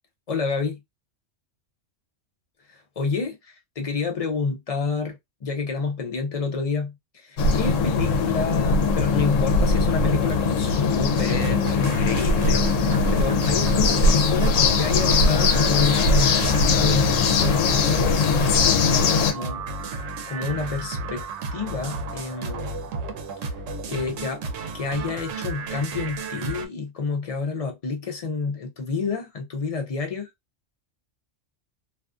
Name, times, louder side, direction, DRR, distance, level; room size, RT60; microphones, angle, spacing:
voice 1, 0.3-0.8 2.7-19.7 20.3-21.2 21.5-22.9 23.4-23.6 23.9-30.3, left 4 dB, 50° left, 0.4 m, -29 dB
sound 1, 7.4-19.3, left 4 dB, 85° left, 1.0 m, -20 dB
sound 2, 11.1-26.7, right 3 dB, 80° right, 1.0 m, -33 dB
2.5 x 2.3 x 2.4 m
omnidirectional pair, 1.3 m